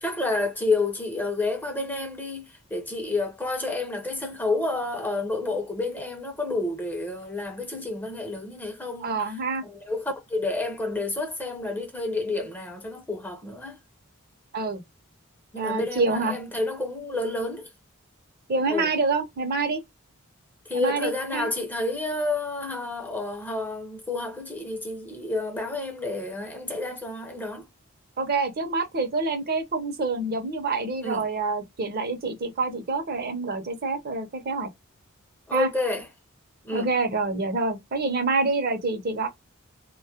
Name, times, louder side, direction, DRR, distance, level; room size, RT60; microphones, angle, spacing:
voice 1, 0.0-9.2 9.6-13.8 15.5-17.7 18.7-18.9 20.7-27.7 31.0-31.3 35.5-36.1 36.6-36.9, left 2 dB, 10° left, 0.5 m, -30 dB
voice 2, 9.0-9.6 14.5-14.8 15.5-16.4 18.5-19.8 20.7-21.5 28.2-34.7 35.5-35.7 36.7-39.3, right 3 dB, 50° right, 0.6 m, -27 dB
2.2 x 2.1 x 2.7 m
head